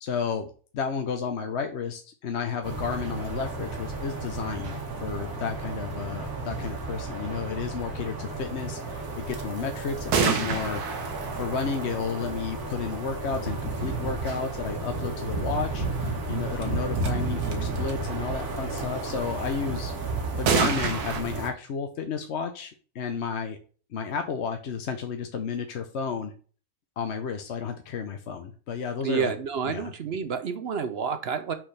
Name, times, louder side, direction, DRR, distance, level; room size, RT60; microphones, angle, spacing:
voice 1, 0.0-4.7 5.0-10.8 11.4-19.9 20.4-23.6 23.9-26.3 27.0-29.3 29.6-29.9, left 5 dB, 55° left, 6 dB, 0.9 m, -32 dB
sound 1, 2.6-21.5, right 3 dB, 75° right, 1.9 m, -33 dB
sound 2, 10.1-12.9 16.6-16.7 17.0-17.1 17.4-17.9 20.5-21.2, right 5 dB, 90° right, 1.6 m, -28 dB
voice 2, 29.0-31.5, right 6 dB, 55° right, 9 dB, 0.7 m, -29 dB
6.2 x 6.1 x 3.3 m, 0.39 s
omnidirectional pair, 1.6 m